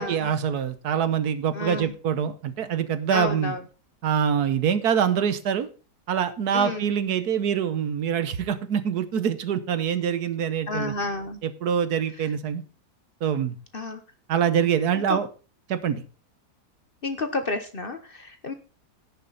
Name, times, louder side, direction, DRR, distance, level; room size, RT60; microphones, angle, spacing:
voice 1, 0.0-3.5 4.0-5.7 6.1-10.9 11.4-12.6 13.2-13.6 14.3-15.3 15.7-16.0, right 8 dB, 75° right, 12 dB, 1.4 m, -25 dB
voice 2, 1.5-1.9 3.1-3.6 6.5-6.9 10.7-11.4 13.7-14.0 15.1-15.2 17.0-18.5, left 3 dB, 40° left, 8 dB, 0.9 m, -30 dB
16.5 x 6.6 x 4.0 m, 0.36 s
omnidirectional pair, 1.7 m